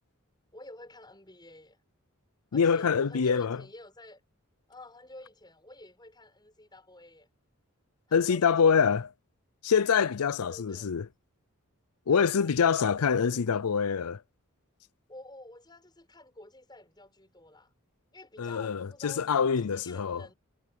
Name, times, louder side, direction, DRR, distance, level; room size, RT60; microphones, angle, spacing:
voice 1, 0.5-1.8 2.5-4.2 4.7-7.3 8.1-8.9 10.3-10.9 12.1-13.5 15.1-17.7 18.1-20.3, left 1 dB, 20° left, 7.2 m, -50 dB
voice 2, 2.5-3.6 8.1-9.1 9.6-11.1 12.1-14.2 18.4-20.2, left 6 dB, 85° left, 0.5 m, -25 dB
head